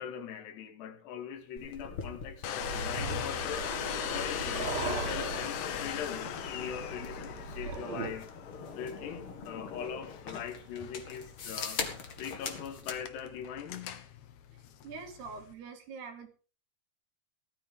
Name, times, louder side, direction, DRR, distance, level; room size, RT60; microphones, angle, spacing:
voice 1, 0.0-3.7 4.1-8.3 8.8-11.8 12.2-14.1, left 8 dB, 85° left, 3.7 m, -41 dB
sound 1, 1.6-13.0, left 5 dB, 40° left, 2.2 m, -43 dB
Domestic sounds home sounds, 2.4-15.5, left 10 dB, 65° left, 1.8 m, -40 dB
sound 2, 2.6-8.1, right 4 dB, 45° right, 3.5 m, -39 dB
voice 2, 14.5-16.3, right 5 dB, 75° right, 4.7 m, -45 dB
18.0 x 13.5 x 3.6 m
omnidirectional pair, 4.7 m